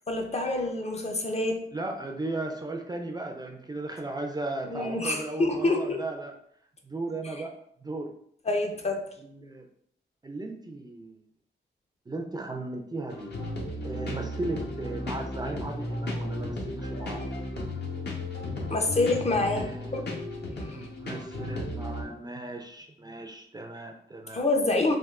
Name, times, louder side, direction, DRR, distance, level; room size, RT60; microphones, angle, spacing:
voice 1, 0.1-1.6 4.7-6.0 8.5-9.1 18.7-19.7 19.9-20.1 20.6-20.9 24.3-25.0, left 2 dB, 35° left, 3 dB, 0.5 m, -27 dB
voice 2, 1.7-6.3 6.8-7.5 7.8-8.1 9.2-9.7 10.2-11.1 12.1-13.4 13.8-17.2 19.5-20.0 20.7-24.4, right 2 dB, 20° right, 3 dB, 0.4 m, -36 dB
sound 1, 13.1-22.0, left 1 dB, 60° left, 0.8 m, -34 dB
3.5 x 2.3 x 2.3 m, 0.68 s
cardioid pair, 70°, 19 cm